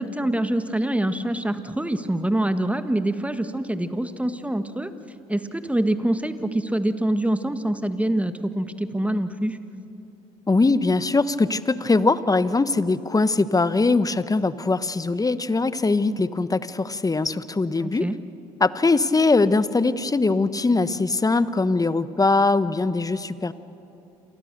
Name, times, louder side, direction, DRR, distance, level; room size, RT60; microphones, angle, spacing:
voice 1, 0.0-4.9 5.3-9.6 17.8-18.2, right 1 dB, 5° right, 10 dB, 1.6 m, -25 dB
voice 2, 10.5-18.1 18.6-23.5, left 3 dB, 20° left, 15 dB, 1.1 m, -21 dB
28.0 x 24.0 x 6.8 m, 2.8 s
hypercardioid pair, 60°, 18 cm